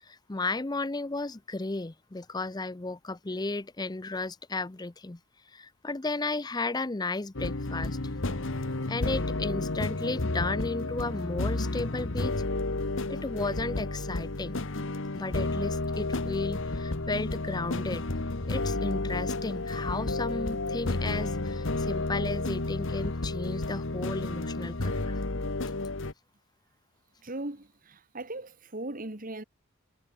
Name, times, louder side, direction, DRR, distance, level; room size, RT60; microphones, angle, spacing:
voice 1, 0.0-5.2 5.5-8.0 8.9-12.4 13.1-14.6 15.1-18.1 18.5-25.2, left 3 dB, 20° left, 0.6 m, -34 dB
sound 1, 7.3-26.1, left 2 dB, 60° left, 1.3 m, -31 dB
voice 2, 27.2-29.4, right 2 dB, 40° right, 1.7 m, -38 dB
head